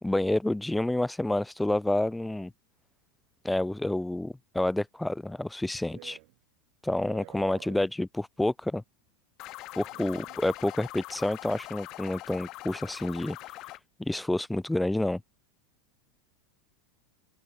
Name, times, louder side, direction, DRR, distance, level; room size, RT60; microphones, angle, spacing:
voice 1, 0.0-2.5 3.4-6.2 6.8-8.8 9.8-13.4 14.0-15.2, left 1 dB, 5° left, 0.4 m, -29 dB
voice 2, 5.9-6.3 6.9-7.9 9.9-10.4, right 40 dB or more, 60° right, 0.8 m, -49 dB
sound 1, 9.4-13.8, left 18 dB, 45° left, 1.1 m, -43 dB
supercardioid pair, 120°, 0 cm